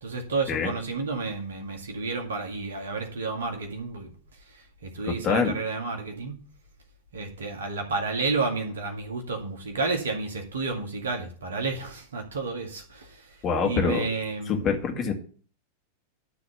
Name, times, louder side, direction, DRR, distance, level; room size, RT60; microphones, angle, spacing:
voice 1, 0.0-4.1 4.5-6.4 7.1-13.4 13.6-14.7, right 3 dB, 65° right, 3 dB, 2.2 m, -31 dB
voice 2, 5.0-5.5 13.4-14.1 14.5-15.1, left 5 dB, 30° left, 3 dB, 2.2 m, -25 dB
12.0 x 4.1 x 8.0 m, 0.43 s
figure-of-eight pair, 90°, 0 cm